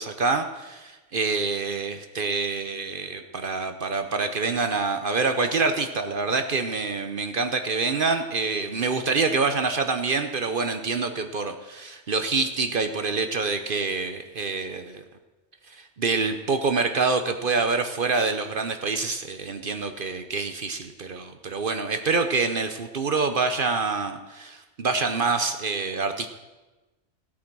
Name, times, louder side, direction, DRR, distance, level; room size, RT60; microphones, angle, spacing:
voice 1, 0.0-15.0 15.8-26.3, right 4 dB, 50° right, 7 dB, 1.0 m, -26 dB
16.5 x 8.5 x 6.1 m, 1.1 s
omnidirectional pair, 1.2 m